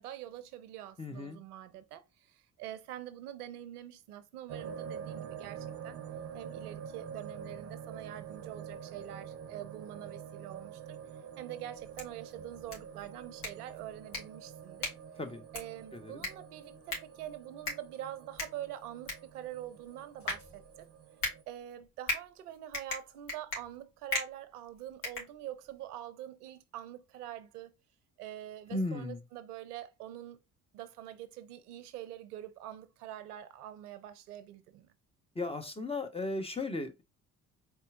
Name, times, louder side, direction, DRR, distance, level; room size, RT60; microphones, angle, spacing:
voice 1, 0.0-6.0 6.3-11.0 11.4-14.9 15.5-20.9 21.5-27.7 28.2-30.4 30.7-34.9, right 12 dB, 85° right, 0.6 m, -45 dB
voice 2, 1.0-1.4 15.2-15.4 15.9-16.2 28.7-29.2 35.3-37.0, left 2 dB, 15° left, 0.8 m, -36 dB
sound 1, 4.5-21.4, right 8 dB, 35° right, 0.6 m, -47 dB
sound 2, 11.7-25.9, left 2 dB, 50° left, 2.4 m, -41 dB
4.2 x 3.4 x 2.5 m
hypercardioid pair, 55°, 44 cm